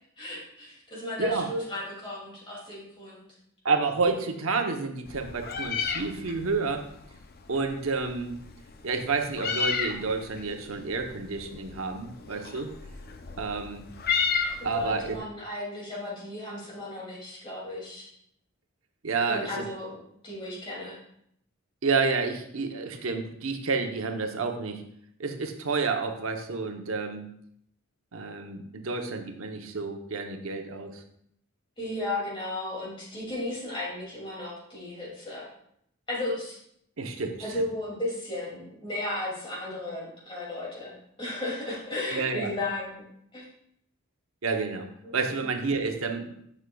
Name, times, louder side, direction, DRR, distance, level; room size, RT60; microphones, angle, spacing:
voice 1, 0.2-3.2 14.6-18.1 19.3-20.0 20.2-21.0 31.8-35.5 36.1-36.6 37.4-43.0 43.3-43.5 45.4-45.5, left 2 dB, 25° left, -4 dB, 2.5 m, -34 dB
voice 2, 3.6-6.9 7.5-8.4 8.8-12.7 13.4-13.9 14.6-15.2 19.0-19.6 21.8-24.8 25.2-27.3 28.1-31.0 37.0-37.6 42.1-42.5 44.4-44.9 45.1-46.3, right 4 dB, 80° right, 5 dB, 0.9 m, -29 dB
Meow, 5.1-15.2, left 5 dB, 45° left, 0.5 m, -34 dB
9.8 x 6.4 x 2.3 m, 0.71 s
head